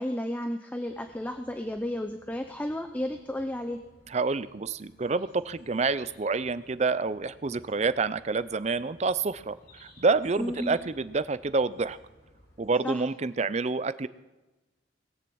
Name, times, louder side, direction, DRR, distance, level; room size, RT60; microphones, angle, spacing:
voice 1, 0.0-3.8 10.4-10.8 12.8-13.0, left 1 dB, 10° left, 6 dB, 0.7 m, -32 dB
sound 1, 0.9-12.7, left 1 dB, 55° left, 3.9 m, -58 dB
voice 2, 4.1-9.6 9.8-12.0 12.6-14.1, right 4 dB, 35° right, 15 dB, 0.5 m, -28 dB
20.0 x 7.2 x 7.9 m, 1.1 s
head